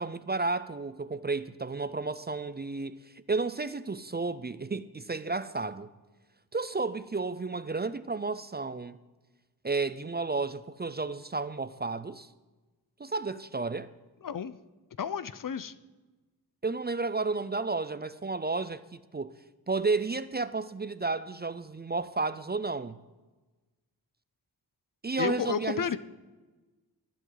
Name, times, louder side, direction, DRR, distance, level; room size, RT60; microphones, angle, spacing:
voice 1, 0.0-5.9 6.5-9.0 9.6-12.3 13.0-13.9 16.6-19.3 19.7-23.0 25.0-26.0, right 3 dB, 25° right, 0.5 m, -32 dB
voice 2, 14.2-14.5 15.0-15.7 25.2-26.0, left 7 dB, 55° left, 0.7 m, -31 dB
20.5 x 11.0 x 4.0 m
wide cardioid pair, 100°, 39 cm